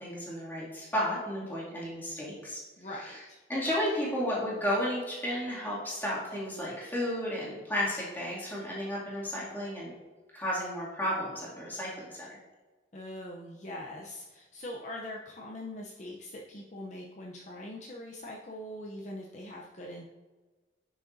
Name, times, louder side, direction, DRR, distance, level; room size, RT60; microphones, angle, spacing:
voice 1, 0.0-2.6 3.0-3.2 3.5-9.9 10.3-12.4, equal, 10° left, -7 dB, 2.4 m, -33 dB
voice 2, 2.8-3.4 12.9-20.1, left 1 dB, 40° left, -2 dB, 0.6 m, -42 dB
10.0 x 6.2 x 2.7 m, 1.3 s
head